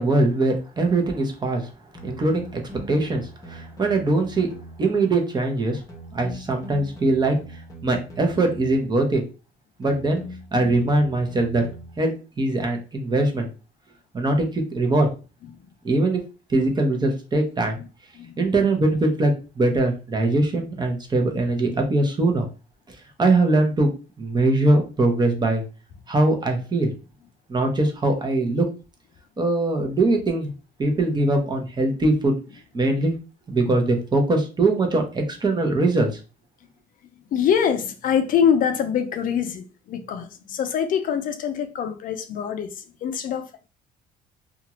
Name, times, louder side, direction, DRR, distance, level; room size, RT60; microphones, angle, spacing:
voice 1, 0.0-1.7 2.0-4.5 4.8-5.8 6.1-9.2 9.8-10.2 10.5-11.6 12.0-13.5 14.1-15.1 15.8-16.2 16.5-17.8 18.4-22.5 22.9-23.9 24.2-25.6 26.1-26.9 27.5-28.7 29.4-30.5 30.8-32.3 32.7-33.1 33.5-36.2, right 2 dB, 25° right, 0.8 m, -22 dB
sound 1, 0.7-1.0 1.9-5.0 5.9-8.9 9.8-12.0, right 1 dB, 20° left, 0.9 m, -41 dB
voice 2, 37.3-43.7, left 8 dB, 55° left, 0.4 m, -24 dB
2.7 x 2.4 x 2.9 m
cardioid pair, 110°, 17 cm